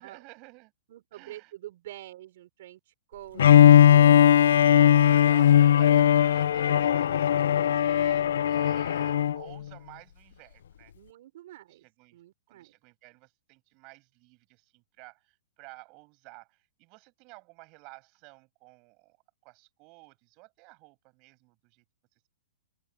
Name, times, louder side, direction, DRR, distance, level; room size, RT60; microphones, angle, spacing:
voice 1, 0.0-0.7 1.1-1.5 4.4-10.9 11.7-12.2 12.5-19.2 19.4-21.8, right 29 dB, 30° right, 7.8 m, -52 dB
voice 2, 0.9-4.5 10.9-11.9 12.1-12.7, right 14 dB, 50° right, 6.1 m, -46 dB
Bowed string instrument, 3.4-9.4, left 10 dB, 70° left, 0.5 m, -19 dB
open air
hypercardioid pair, 160°, 0 cm